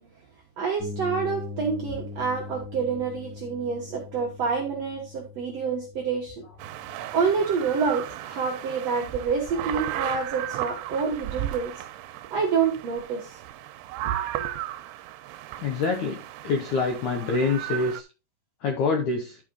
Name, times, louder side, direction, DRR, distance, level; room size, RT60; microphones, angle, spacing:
voice 1, 0.6-6.3 7.1-11.7 12.3-13.3, right 5 dB, 65° right, -1 dB, 1.6 m, -27 dB
sound 1, 0.8-8.5, left 4 dB, 15° right, 0.4 m, -41 dB
sound 2, 6.6-18.0, right 13 dB, 85° right, 2.7 m, -35 dB
voice 2, 15.6-18.0 18.6-19.4, left 4 dB, 75° left, 3 dB, 1.8 m, -26 dB
11.0 x 5.0 x 3.7 m, 0.30 s
omnidirectional pair, 4.8 m